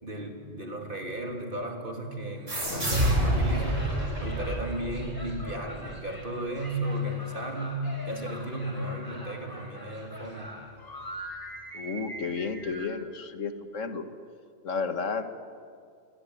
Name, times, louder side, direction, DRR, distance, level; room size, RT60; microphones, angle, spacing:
voice 1, 0.0-3.8 4.2-10.5, right 1 dB, 45° right, 2 dB, 3.6 m, -34 dB
sound 1, 2.5-5.7, right 1 dB, 75° right, 6.8 m, -28 dB
Acoustic guitar / Strum, 2.8-7.6, right 2 dB, 55° left, 6.6 m, -42 dB
sound 2, 3.1-12.9, right 1 dB, 15° left, 4.6 m, -43 dB
voice 2, 11.7-14.1 14.6-15.3, left 5 dB, 85° left, 8 dB, 2.0 m, -32 dB
26.5 x 22.0 x 9.9 m, 2.3 s
omnidirectional pair, 1.3 m